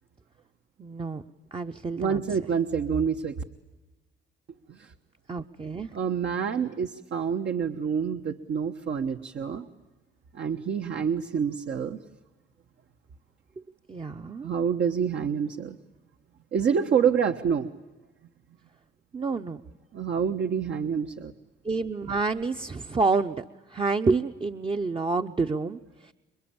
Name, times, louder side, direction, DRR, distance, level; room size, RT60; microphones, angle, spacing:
voice 1, 0.8-1.2 1.5-2.2 5.3-5.9 13.9-14.5 19.1-19.6 21.6-23.4 23.7-26.1, right 4 dB, 25° right, 6 dB, 0.9 m, -28 dB
voice 2, 2.0-3.4 4.7-4.9 5.9-9.7 10.3-12.0 14.4-15.8 16.5-17.7 19.9-21.3, right 7 dB, 60° right, 5 dB, 1.3 m, -27 dB
28.0 x 22.5 x 8.8 m, 1.1 s
cardioid pair, 90°, 20 cm